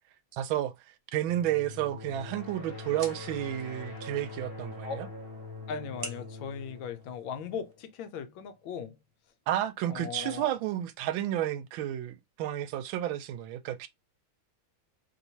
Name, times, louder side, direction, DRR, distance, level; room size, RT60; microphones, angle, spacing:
voice 1, 0.3-0.7 1.1-5.1 9.5-13.9, right 12 dB, 80° right, 1.3 m, -31 dB
sound 1, 1.3-7.9, left 2 dB, 50° left, 0.6 m, -44 dB
sound 2, 1.7-7.7, right 4 dB, 55° right, 0.6 m, -50 dB
voice 2, 5.7-9.0 9.9-10.6, left 6 dB, 75° left, 1.3 m, -38 dB
3.3 x 2.9 x 2.7 m
omnidirectional pair, 2.2 m